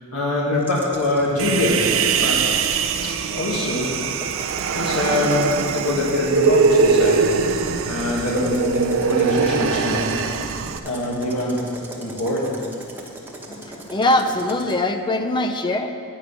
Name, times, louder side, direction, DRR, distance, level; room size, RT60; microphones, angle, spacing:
voice 1, 0.1-2.5 3.0-3.9 4.7-7.3 7.9-10.1 10.8-11.6 12.0-12.5, left 1 dB, 80° left, -4 dB, 1.6 m, -23 dB
sound 1, 0.6-1.3 3.6-14.8, right 1 dB, 10° right, 1.0 m, -39 dB
Human voice, 1.4-10.8, right 5 dB, 65° right, 0.5 m, -22 dB
voice 2, 13.2-15.9, left 1 dB, 20° left, 6 dB, 0.5 m, -22 dB
9.4 x 5.5 x 8.0 m, 2.5 s
head